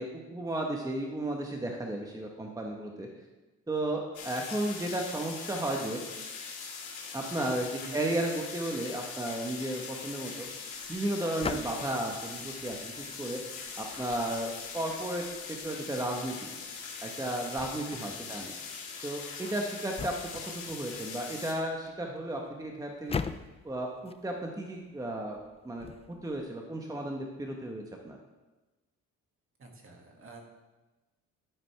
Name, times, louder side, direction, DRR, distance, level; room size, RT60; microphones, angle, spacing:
voice 1, 0.0-3.1 3.7-6.0 7.1-10.5 10.9-13.4 13.8-16.5 17.0-18.5 19.0-20.1 20.4-23.2 23.6-25.4 25.6-28.2, right 1 dB, 10° right, 1 dB, 1.1 m, -34 dB
sound 1, 4.1-21.5, left 5 dB, 90° left, 2.4 m, -42 dB
sound 2, 10.3-26.4, left 5 dB, 20° left, 0.4 m, -44 dB
voice 2, 17.9-18.4 29.6-30.4, right 3 dB, 45° right, 1 dB, 2.1 m, -49 dB
11.0 x 9.3 x 3.4 m, 1.1 s
cardioid pair, 90°, 30 cm